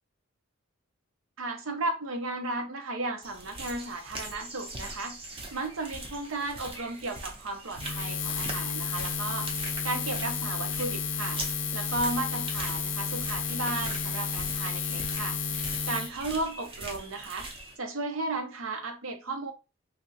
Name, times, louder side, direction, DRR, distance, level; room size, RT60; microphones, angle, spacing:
voice 1, 1.4-11.4 11.7-15.4 15.9-17.5 17.8-19.5, right 2 dB, 75° right, 0.7 m, -34 dB
sound 1, 3.2-17.8, right 2 dB, 25° right, 0.6 m, -42 dB
Buzz, 7.8-16.1, left 5 dB, 60° left, 0.4 m, -32 dB
3.3 x 2.4 x 2.7 m
head